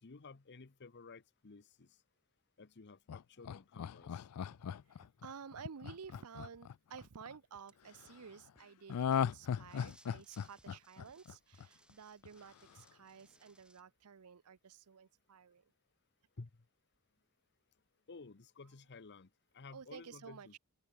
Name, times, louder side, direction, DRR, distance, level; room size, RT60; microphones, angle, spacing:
voice 1, 0.0-2.0 2.6-4.2 13.3-13.4 16.4-16.5 18.1-20.6, left 4 dB, 50° left, 0.9 m, -54 dB
Laughter, 3.1-7.3 8.9-11.9 12.2-12.3, left 8 dB, 85° left, 0.4 m, -38 dB
sound 1, 4.0-4.1 4.5-4.6 5.0-5.1 5.5-5.6 6.0-6.1 6.5-6.6 7.0-7.1 7.5-7.6 8.0-8.1 8.6-8.7 9.1-9.2 9.6-9.7 10.1-10.2 10.6-10.7 11.1-11.2 11.6-11.7, equal, 15° left, 1.8 m, -68 dB
voice 2, 4.9-15.6 19.7-20.6, right 6 dB, 80° right, 0.7 m, -53 dB
sound 2, 6.9-7.0 7.7-7.8 9.1-9.3 9.6-13.8, right 1 dB, 5° right, 5.8 m, -68 dB
open air
head